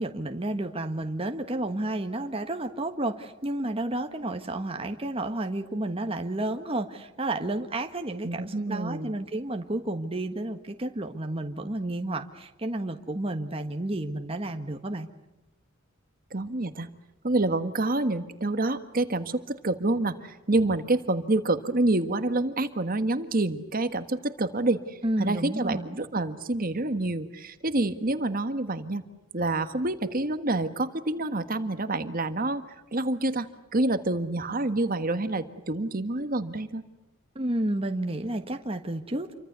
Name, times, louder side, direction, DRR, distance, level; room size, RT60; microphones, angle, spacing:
voice 1, 0.0-15.1 25.0-25.9 37.3-39.3, right 1 dB, 30° right, 5 dB, 1.5 m, -31 dB
voice 2, 8.2-9.2 16.3-16.9 17.2-29.0 29.3-32.6 32.9-36.8, right 2 dB, 45° right, 10 dB, 1.5 m, -27 dB
29.0 x 24.5 x 8.1 m, 0.95 s
head